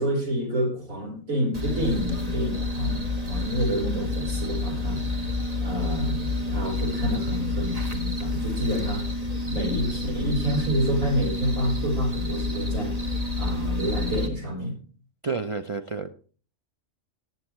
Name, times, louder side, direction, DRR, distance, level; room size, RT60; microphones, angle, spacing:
voice 1, 0.0-5.0 5.6-9.0 9.5-13.0 13.4-14.7, equal, 75° right, 0 dB, 4.8 m, -28 dB
sound 1, 1.5-14.3, left 2 dB, 30° right, 1.6 m, -29 dB
voice 2, 15.2-16.1, right 4 dB, 45° right, 5 dB, 0.4 m, -30 dB
18.5 x 7.7 x 3.2 m, 0.40 s
omnidirectional pair, 1.4 m